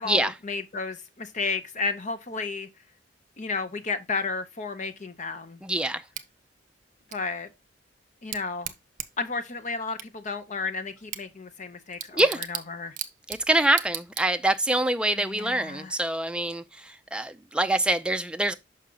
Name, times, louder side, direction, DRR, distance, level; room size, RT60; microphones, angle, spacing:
voice 1, 0.0-2.7 3.4-5.6 7.1-7.5 8.2-8.7 9.2-13.0 15.2-16.0, left 4 dB, 40° left, 0.7 m, -32 dB
voice 2, 5.6-6.0 12.1-12.4 13.3-18.5, right 1 dB, 5° right, 0.5 m, -25 dB
Bicycle / Tick, 6.1-14.7, right 10 dB, 45° right, 0.7 m, -40 dB
6.3 x 5.7 x 3.8 m
head